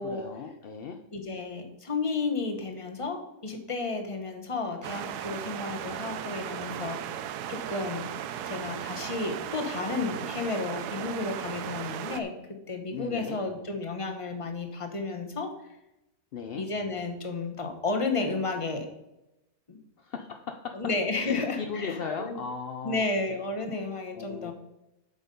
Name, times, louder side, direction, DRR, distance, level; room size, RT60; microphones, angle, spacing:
voice 1, 0.0-1.0 12.9-13.4 16.3-16.6 20.0-20.7 21.2-23.1 24.1-24.5, left 6 dB, 60° left, 5 dB, 0.6 m, -37 dB
voice 2, 1.1-8.1 8.4-12.3 12.7-15.5 16.6-18.8 19.7-19.8 20.7-22.4 22.8-24.5, left 3 dB, 25° left, 5 dB, 1.0 m, -32 dB
sound 1, 4.8-12.2, right 10 dB, 80° right, 1.2 m, -36 dB
8.1 x 6.7 x 5.3 m, 0.92 s
omnidirectional pair, 1.7 m